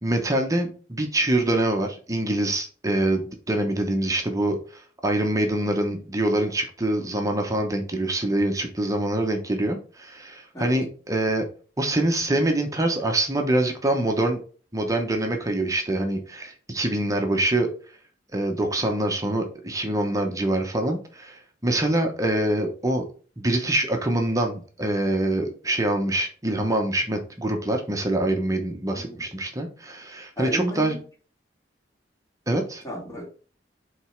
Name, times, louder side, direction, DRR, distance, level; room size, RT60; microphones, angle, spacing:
voice 1, 0.0-11.5 11.8-14.4 14.7-17.7 18.3-23.0 23.4-30.9 32.5-32.8, right 1 dB, 20° right, 3 dB, 0.9 m, -25 dB
voice 2, 30.4-31.0 32.8-33.3, right 1 dB, 20° left, -2 dB, 2.3 m, -32 dB
5.3 x 4.0 x 4.5 m, 0.39 s
head